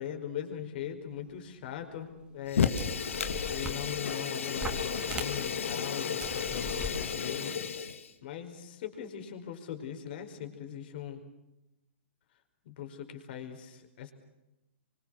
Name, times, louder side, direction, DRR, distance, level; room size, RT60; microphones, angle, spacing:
voice 1, 0.0-2.8 3.5-7.5 8.2-11.2 12.6-14.1, left 9 dB, 50° left, 6 dB, 5.1 m, -40 dB
sound 1, 1.7-1.8 2.4-2.5 2.8-4.2 4.5-5.7 6.2-6.9, right 1 dB, 10° right, 3.2 m, -40 dB
Fire, 2.5-8.1, left 7 dB, 80° left, 2.6 m, -33 dB
27.0 x 25.0 x 6.5 m, 0.94 s
hypercardioid pair, 150°, 7 cm